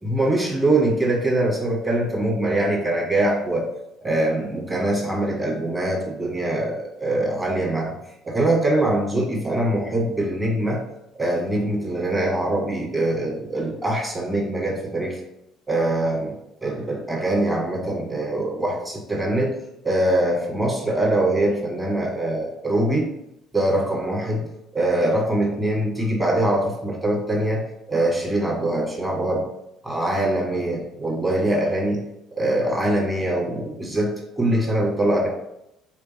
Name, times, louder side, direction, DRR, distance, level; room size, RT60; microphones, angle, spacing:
voice 1, 0.0-3.6 4.0-8.0 8.2-10.8 11.1-15.2 15.7-16.3 16.6-19.5 19.8-23.1 23.5-24.5 24.7-27.6 27.9-29.4 29.8-32.0 32.4-35.3, right 1 dB, 10° right, -2 dB, 1.7 m, -23 dB
3.4 x 3.4 x 4.1 m, 0.83 s
hypercardioid pair, 55°, 0 cm